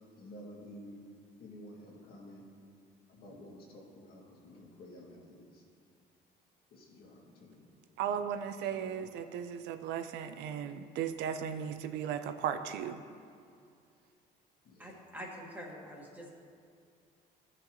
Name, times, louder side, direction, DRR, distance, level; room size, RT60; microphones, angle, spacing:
voice 1, 0.2-1.0 1.4-2.4 3.1-5.6 6.7-7.7 8.7-9.1 14.7-15.0, left 1 dB, 65° left, -2 dB, 2.0 m, -51 dB
voice 2, 8.0-13.0, right 8 dB, 85° right, 9 dB, 0.5 m, -36 dB
voice 3, 14.8-16.3, equal, 10° right, -4 dB, 1.7 m, -46 dB
15.0 x 6.0 x 3.1 m, 2.3 s
cardioid pair, 110°, 17 cm